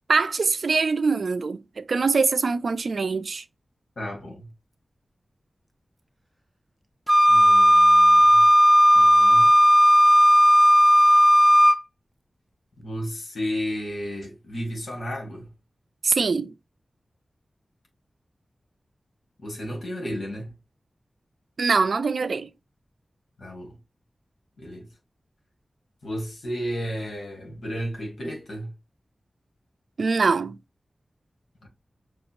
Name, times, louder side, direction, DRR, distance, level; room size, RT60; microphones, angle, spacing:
voice 1, 0.1-3.4 16.0-16.5 21.6-22.5 30.0-30.6, right 4 dB, 75° right, 0.4 m, -23 dB
voice 2, 4.0-4.5 7.3-8.5 8.9-9.5 12.8-15.5 19.4-20.5 23.4-23.7 24.6-24.9 26.0-28.7 31.6-31.7, equal, 75° left, 1.7 m, -33 dB
Wind instrument woodwind instrument, 7.1-11.8, equal, 15° right, 0.5 m, -15 dB
5.9 x 2.6 x 2.9 m
wide cardioid pair, 65°, 0 cm